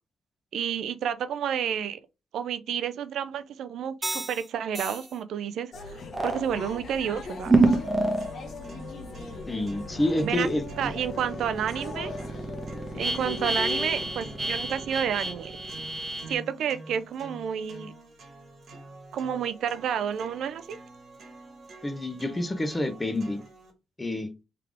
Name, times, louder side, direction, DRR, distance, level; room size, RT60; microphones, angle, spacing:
voice 1, 0.5-2.0 2.3-7.5 10.2-10.5 10.8-12.1 13.0-15.5 16.3-17.9 19.1-20.8, right 8 dB, 70° right, 0.4 m, -30 dB
sound 1, 4.0-4.4 4.7-5.0 6.1-6.4 7.5-8.3 8.8-16.4, right 2 dB, 15° right, 0.9 m, -28 dB
sound 2, 5.7-14.5, left 4 dB, 60° left, 1.4 m, -40 dB
sound 3, 7.7-23.7, right 2 dB, 50° right, 1.3 m, -47 dB
voice 2, 9.5-10.9 21.8-23.4 24.0-24.3, left 1 dB, 20° left, 0.9 m, -28 dB
3.5 x 3.4 x 3.5 m
cardioid pair, 90°, 0 cm